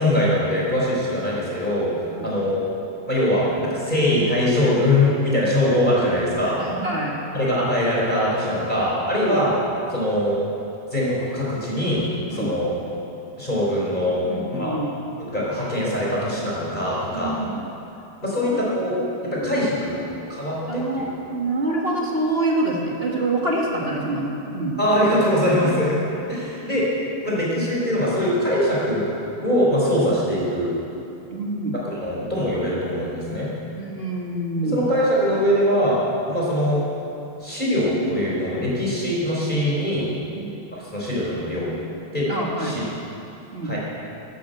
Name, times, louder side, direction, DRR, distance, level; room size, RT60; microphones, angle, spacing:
voice 1, 0.0-2.7 3.1-6.6 7.3-9.5 9.9-10.4 10.9-13.0 13.4-14.7 15.2-17.4 18.2-19.0 19.2-20.0 20.3-21.0 24.8-26.0 26.3-26.9 27.2-29.1 29.4-30.8 31.7-33.5 34.6-36.8 37.4-40.1 40.7-41.7 42.1-42.3 42.6-42.8 43.6-43.8, left 1 dB, 15° left, -6 dB, 3.9 m, -22 dB
voice 2, 6.6-7.2 9.2-9.4 12.3-12.5 14.2-14.9 17.1-17.6 18.4-18.6 19.3-19.5 20.0-20.2 20.7-24.8 25.6-25.7 31.3-31.7 33.8-34.8 40.3-40.5 42.3-42.8 43.5-43.8, right 2 dB, 30° right, -2 dB, 1.1 m, -26 dB
12.5 x 12.5 x 7.8 m, 2.8 s
omnidirectional pair, 3.5 m